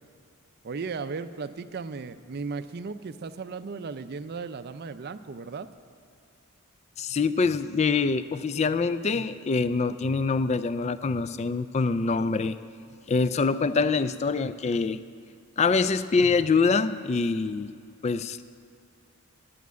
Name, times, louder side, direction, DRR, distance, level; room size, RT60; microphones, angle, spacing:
voice 1, 0.6-5.7, right 4 dB, 45° right, 12 dB, 0.4 m, -36 dB
voice 2, 7.0-12.6 13.1-15.0 15.6-17.7 18.0-18.4, left 4 dB, 30° left, 14 dB, 0.3 m, -25 dB
9.4 x 8.5 x 9.3 m, 2.4 s
head